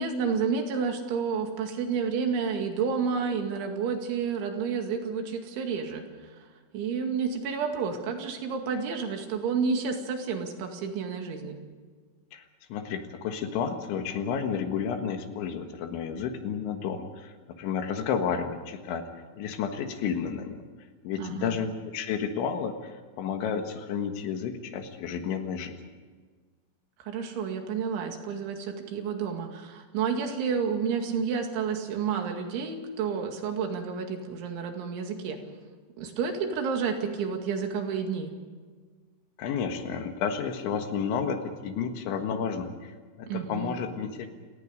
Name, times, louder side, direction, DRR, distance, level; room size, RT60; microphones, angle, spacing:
voice 1, 0.0-6.1 6.7-11.6 21.2-21.6 27.0-35.4 36.0-38.3 43.3-43.7, right 6 dB, 75° right, 4 dB, 4.6 m, -30 dB
voice 2, 12.3-19.1 19.4-20.6 21.0-25.8 39.4-44.3, left 7 dB, 75° left, 6 dB, 3.9 m, -31 dB
29.5 x 18.5 x 5.2 m, 1.5 s
omnidirectional pair, 5.5 m